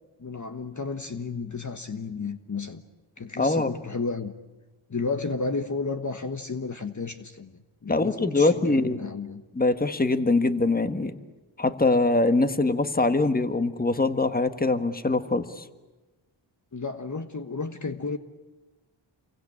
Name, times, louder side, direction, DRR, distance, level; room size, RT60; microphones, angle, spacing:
voice 1, 0.2-2.8 3.2-4.3 4.9-7.5 7.8-9.4 16.7-18.2, left 4 dB, 35° left, 8 dB, 1.4 m, -32 dB
voice 2, 3.4-3.7 7.9-9.1 9.5-11.1 11.6-15.6, left 2 dB, 20° left, 9 dB, 1.6 m, -23 dB
28.0 x 23.5 x 8.8 m, 1.2 s
wide cardioid pair, 80°, 48 cm